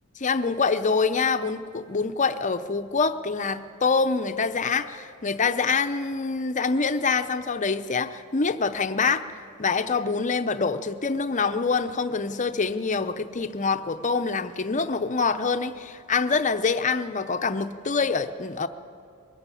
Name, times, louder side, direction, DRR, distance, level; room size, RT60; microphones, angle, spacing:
voice 1, 0.2-9.2 9.6-18.7, left 4 dB, 35° left, 10 dB, 0.7 m, -25 dB
22.5 x 14.5 x 8.4 m, 2.5 s
head